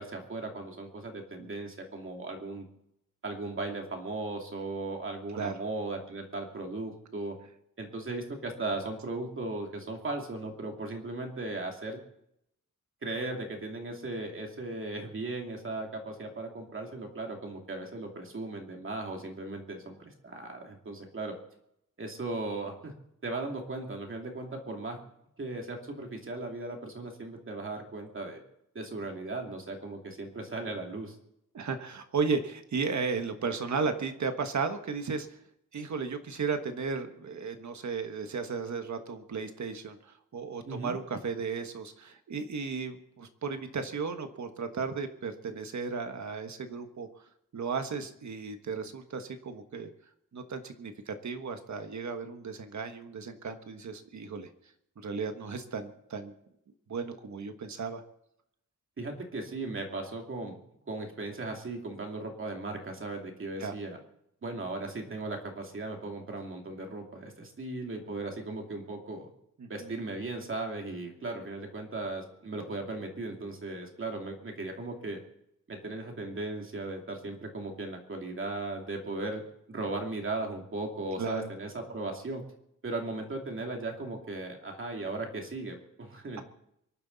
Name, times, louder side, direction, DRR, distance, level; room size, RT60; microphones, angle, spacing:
voice 1, 0.0-2.7 3.2-7.4 7.8-12.0 13.0-21.3 22.0-22.9 23.2-25.0 25.4-28.4 28.7-31.1 40.6-41.0 59.0-60.6 60.9-64.0 64.4-69.3 69.7-75.2 75.7-79.4 79.7-82.4 82.8-86.4, right 2 dB, 40° right, 2 dB, 2.7 m, -37 dB
voice 2, 31.5-35.4 35.7-47.1 47.5-49.9 50.3-54.5 55.0-56.3 56.9-58.0 63.6-63.7 69.6-69.9 81.2-81.5, right 5 dB, 60° right, 7 dB, 1.4 m, -35 dB
24.5 x 11.5 x 4.1 m, 0.78 s
wide cardioid pair, 175°, 33 cm